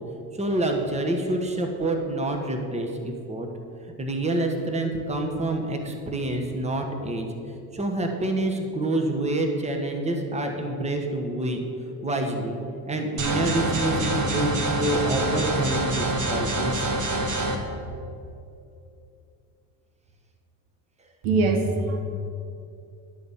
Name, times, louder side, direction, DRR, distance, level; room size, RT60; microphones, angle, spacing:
voice 1, 0.3-3.5 4.0-7.3 7.7-11.6 12.0-12.6 12.9-16.9, right 1 dB, 15° right, 3 dB, 1.2 m, -27 dB
sound 1, 13.2-17.6, right 1 dB, 40° right, 1.3 m, -26 dB
voice 2, 21.2-22.0, right 3 dB, 70° right, 5 dB, 1.2 m, -22 dB
10.5 x 4.1 x 7.3 m, 2.6 s
supercardioid pair, 80°, 48 cm